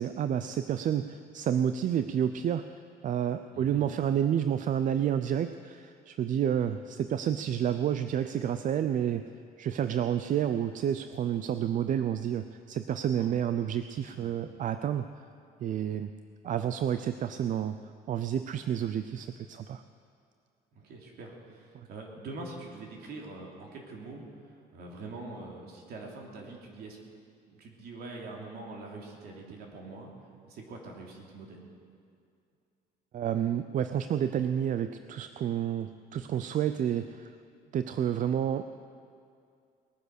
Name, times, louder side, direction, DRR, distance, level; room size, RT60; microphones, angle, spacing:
voice 1, 0.0-2.7 3.0-9.3 9.6-15.1 15.6-16.1 16.4-17.7 18.1-19.8 33.1-37.3 37.7-38.7, right 9 dB, 50° right, 11 dB, 0.5 m, -30 dB
voice 2, 3.5-3.8 13.1-13.3 14.1-14.4 20.7-27.0 27.5-30.1 30.5-31.7, right 3 dB, 70° right, -1 dB, 3.2 m, -44 dB
20.0 x 10.0 x 6.5 m, 2.4 s
cardioid pair, 110°, 17 cm